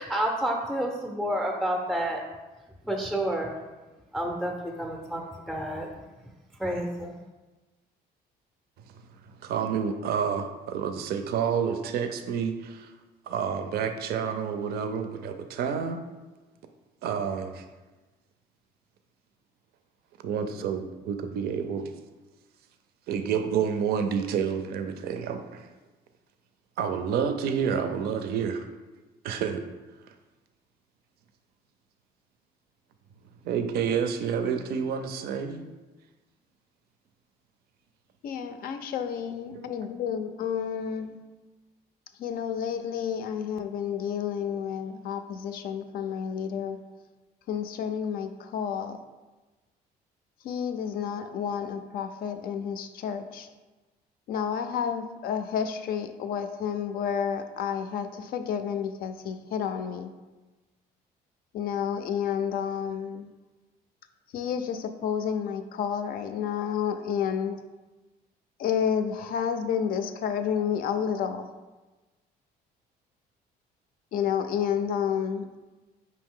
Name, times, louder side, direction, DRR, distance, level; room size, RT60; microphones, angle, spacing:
voice 1, 0.0-2.2 2.8-3.5 4.1-5.9 6.6-7.1, right 1 dB, ahead, 1 dB, 0.4 m, -29 dB
voice 2, 9.4-12.9 13.3-16.0 17.0-17.6 20.2-21.9 23.1-25.6 26.8-28.7 29.2-29.6 33.4-35.6 39.5-39.7, right 7 dB, 70° right, 8 dB, 0.4 m, -29 dB
voice 3, 38.2-41.2 42.2-46.8 47.5-49.0 50.4-53.5 54.3-60.1 61.5-63.3 64.3-67.6 68.6-71.5 74.1-75.6, left 8 dB, 60° left, 8 dB, 0.4 m, -30 dB
5.3 x 2.8 x 3.6 m, 1.2 s
cardioid pair, 110°, 17 cm